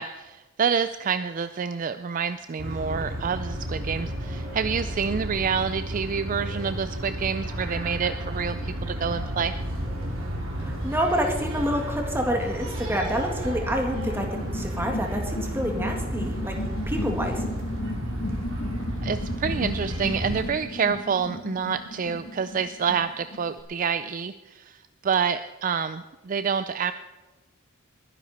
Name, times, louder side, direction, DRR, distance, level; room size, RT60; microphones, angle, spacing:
voice 1, 0.0-9.5 19.0-24.8 25.0-26.9, right 6 dB, 40° right, 12 dB, 0.4 m, -28 dB
sound 1, 2.6-20.5, right 1 dB, 75° right, 3.0 m, -32 dB
voice 2, 10.6-14.3 14.5-16.6 16.9-17.4, equal, 10° right, 2 dB, 2.0 m, -27 dB
sound 2, 13.6-23.6, left 2 dB, 65° left, 1.4 m, -35 dB
21.0 x 10.0 x 4.2 m, 1.1 s
head